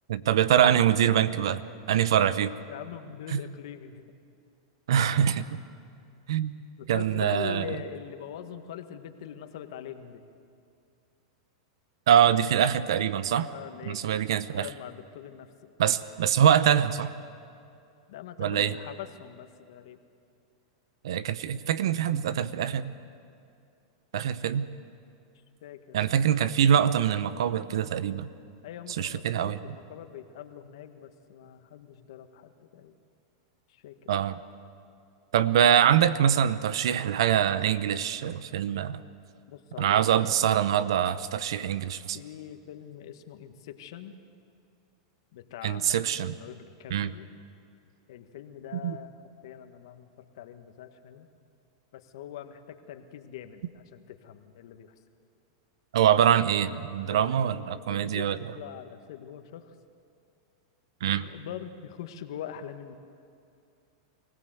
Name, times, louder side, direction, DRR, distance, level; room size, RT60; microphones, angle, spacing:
voice 1, 0.1-1.6 1.9-2.5 3.3-3.4 4.9-5.6 6.3-6.5 6.9-7.6 12.1-13.5 13.9-14.7 15.8-17.1 18.4-18.8 21.0-22.9 24.1-24.7 25.9-28.3 29.0-29.6 34.1-34.4 35.3-39.0 39.8-42.2 45.6-46.3 46.9-47.1 48.7-49.0 55.9-58.4 61.0-61.2, right 9 dB, 80° right, 15 dB, 0.9 m, -24 dB
voice 2, 2.7-4.1 6.8-10.2 13.5-14.2 14.6-15.5 18.1-20.0 25.6-26.1 28.6-32.9 33.7-34.1 39.5-40.2 40.6-40.8 42.1-44.1 45.3-47.3 48.1-51.3 51.9-54.9 57.0-59.7 61.1-62.9, left 10 dB, 70° left, 8 dB, 1.5 m, -43 dB
24.0 x 16.5 x 7.9 m, 2.5 s
hypercardioid pair, 125°, 3 cm